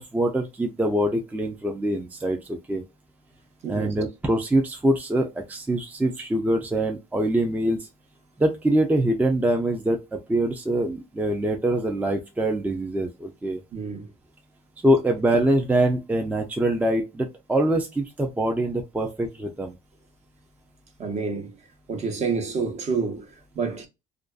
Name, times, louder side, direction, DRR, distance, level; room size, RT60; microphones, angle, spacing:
voice 1, 0.0-2.8 3.7-7.9 8.4-13.6 14.8-19.7, right 1 dB, 10° right, 0.4 m, -24 dB
voice 2, 3.6-3.9 13.7-14.1 21.0-21.6 21.9-23.9, right 5 dB, 40° right, 0.8 m, -28 dB
2.4 x 2.3 x 2.3 m
cardioid pair, 110°, 17 cm